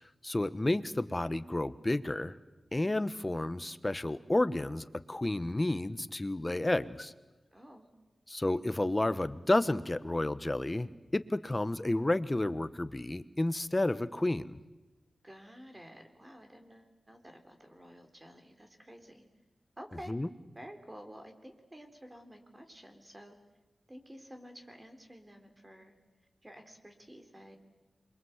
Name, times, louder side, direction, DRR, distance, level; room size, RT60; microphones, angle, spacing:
voice 1, 0.2-2.3 2.7-7.1 8.3-14.6 20.1-20.3, left 2 dB, 25° left, 13 dB, 1.1 m, -31 dB
voice 2, 7.5-7.9 15.2-19.2 19.8-20.2 20.5-23.4 23.9-25.9 26.4-27.6, equal, 20° right, 5 dB, 3.6 m, -51 dB
27.5 x 23.5 x 8.1 m, 1.1 s
wide cardioid pair, 85°, 0 cm